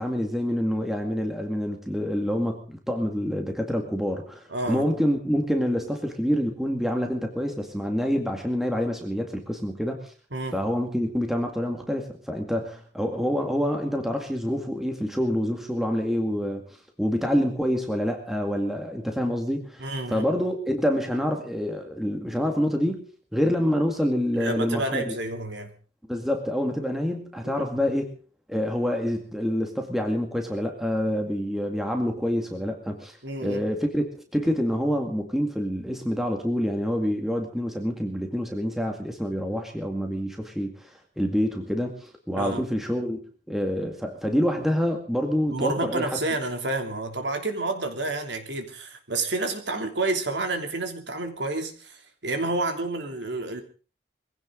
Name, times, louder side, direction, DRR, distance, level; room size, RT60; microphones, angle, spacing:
voice 1, 0.0-10.1 10.5-23.0 23.3-25.1 26.1-28.1 28.5-43.2 43.5-46.2, equal, ahead, 2.1 m, -27 dB
voice 2, 4.5-4.8 10.3-10.6 19.8-20.2 24.3-25.7 27.4-27.8 33.2-33.6 42.4-42.7 45.5-53.6, right 2 dB, 75° right, 3.1 m, -29 dB
22.0 x 16.0 x 3.9 m
head